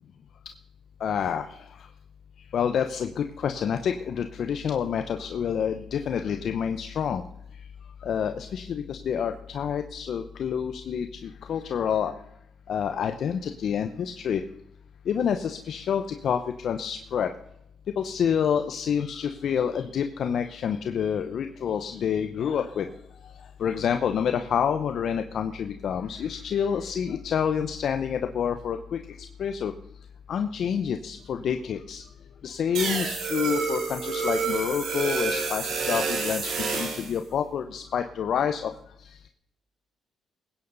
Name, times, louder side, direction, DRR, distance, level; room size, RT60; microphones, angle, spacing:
voice 1, 1.0-1.5 2.5-7.2 8.0-12.1 12.7-14.4 15.1-17.3 18.0-22.9 23.6-29.0 29.4-29.7 30.3-32.0 32.4-38.7, left 8 dB, 65° left, 7 dB, 0.8 m, -28 dB
sound 1, 32.7-37.1, right 5 dB, 80° right, 4.2 m, -28 dB
20.5 x 9.6 x 4.0 m, 0.77 s
cardioid pair, 90°, 0 cm